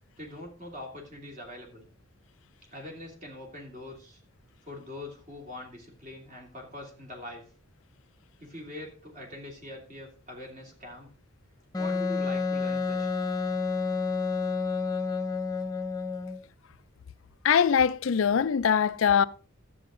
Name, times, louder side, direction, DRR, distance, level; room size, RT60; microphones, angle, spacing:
voice 1, 0.2-1.9 2.7-4.2 4.6-7.4 8.4-11.1 11.8-13.1, left 1 dB, 35° right, 3.0 m, -43 dB
Wind instrument woodwind instrument, 11.7-16.4, left 4 dB, 20° left, 0.8 m, -29 dB
voice 2, 17.4-19.2, left 7 dB, 75° left, 0.4 m, -22 dB
12.5 x 7.8 x 3.8 m
head